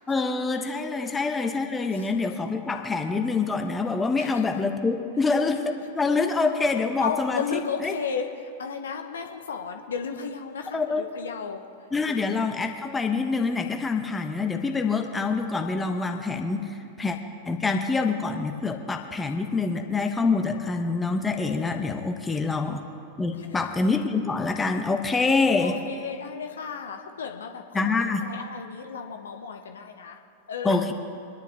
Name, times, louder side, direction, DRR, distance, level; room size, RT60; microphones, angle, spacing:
voice 1, 0.1-8.0 10.7-11.1 11.9-17.2 17.4-22.8 23.2-25.8 27.7-28.3 30.6-30.9, left 4 dB, 10° left, 4 dB, 1.1 m, -26 dB
voice 2, 7.0-11.6 22.3-22.4 23.4-23.5 25.6-30.2 30.5-30.8, left 6 dB, 65° left, 5 dB, 1.1 m, -34 dB
25.0 x 10.5 x 3.6 m, 2.6 s
figure-of-eight pair, 90°, 0 cm